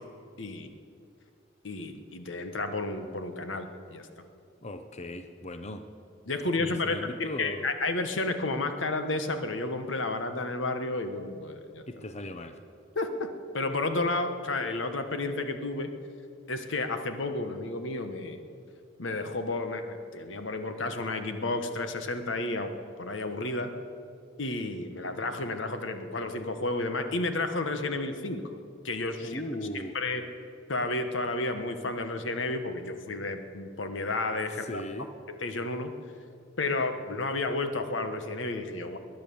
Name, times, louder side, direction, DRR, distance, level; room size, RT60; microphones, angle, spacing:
voice 1, 0.4-0.7 1.6-4.1 6.3-11.8 12.9-13.3 13.5-15.9 16.5-18.4 19.0-22.7 23.0-23.7 24.4-28.6 28.8-29.4 29.9-30.2 30.7-34.8 35.3-35.9 36.6-39.0, left 2 dB, 85° left, 8 dB, 1.3 m, -31 dB
voice 2, 4.6-5.8 6.6-7.7 11.9-12.6 29.2-30.0 34.6-35.1, left 1 dB, 35° left, 8 dB, 0.7 m, -38 dB
20.0 x 10.5 x 7.0 m, 2.4 s
head